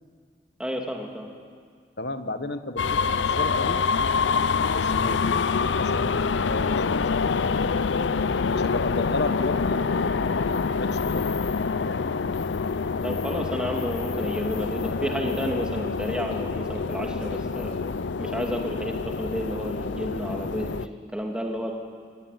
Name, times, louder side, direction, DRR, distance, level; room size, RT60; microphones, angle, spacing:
voice 1, 0.6-1.3 13.0-17.7 18.2-21.7, equal, 5° right, 1 dB, 2.5 m, -31 dB
voice 2, 2.0-3.8 4.7-5.3 5.5-7.0 8.5-10.3 10.7-11.3 11.8-12.2, left 2 dB, 65° left, 9 dB, 1.3 m, -33 dB
sound 1, 2.8-20.9, left 5 dB, 85° left, 0.6 m, -26 dB
24.5 x 18.0 x 9.3 m, 2.1 s
head